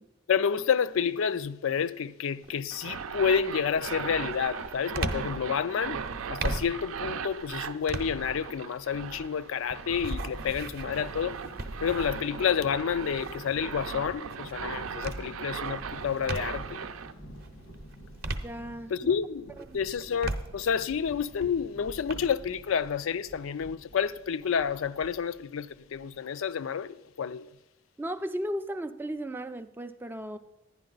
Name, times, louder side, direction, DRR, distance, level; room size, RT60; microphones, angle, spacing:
voice 1, 0.3-6.0 6.3-11.4 11.8-16.9 18.9-19.5 19.7-27.5, left 7 dB, 75° left, 0.4 m, -29 dB
sound 1, 2.4-2.8 3.3-16.8 17.3-19.1 19.5-22.1, right 2 dB, 45° right, 0.6 m, -39 dB
sound 2, 2.7-17.1, right 6 dB, 85° right, 0.5 m, -38 dB
Thunder, 9.8-26.4, equal, 90° left, 1.7 m, -50 dB
voice 2, 18.4-19.1 28.0-30.4, right 1 dB, 10° right, 0.3 m, -35 dB
10.5 x 10.5 x 3.9 m
head